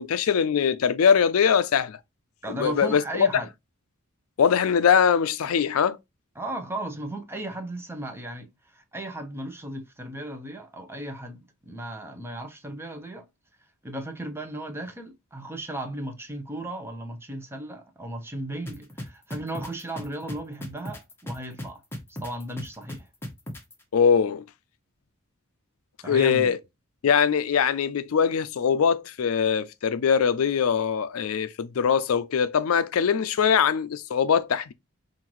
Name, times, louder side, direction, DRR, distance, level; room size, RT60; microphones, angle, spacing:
voice 1, 0.0-2.0 2.5-3.3 4.4-6.0 23.9-24.4 26.0-26.6 27.0-34.7, left 7 dB, 70° left, 0.4 m, -22 dB
voice 2, 2.4-3.5 6.4-13.3 13.8-21.8 22.1-23.1 26.0-26.5, right 1 dB, 10° right, 0.7 m, -36 dB
sound 1, 18.7-23.7, equal, 10° left, 1.0 m, -36 dB
5.6 x 2.6 x 3.0 m
head